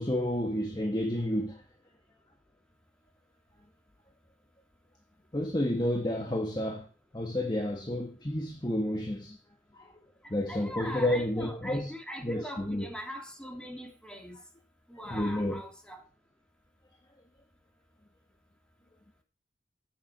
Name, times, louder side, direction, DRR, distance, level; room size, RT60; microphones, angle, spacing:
voice 1, 0.0-1.6 5.3-6.9 7.1-9.4 9.7-10.0 10.3-11.9 12.2-12.9 15.1-15.6, left 1 dB, 25° left, 1.5 m, -30 dB
voice 2, 10.2-14.4 14.9-16.0, equal, 5° left, 3.5 m, -41 dB
15.5 x 7.5 x 6.6 m
head